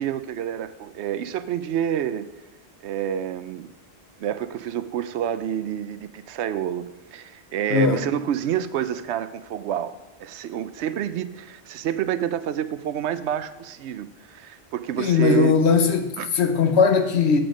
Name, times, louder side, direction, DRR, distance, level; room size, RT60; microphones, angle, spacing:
voice 1, 0.0-2.3 2.8-3.7 4.2-6.8 7.1-9.9 10.2-15.5 16.2-16.3, right 10 dB, 80° right, 0.8 m, -28 dB
voice 2, 7.7-8.1 15.0-16.1 16.3-17.4, left 5 dB, 75° left, 1.1 m, -19 dB
7.8 x 7.8 x 5.0 m
omnidirectional pair, 1.1 m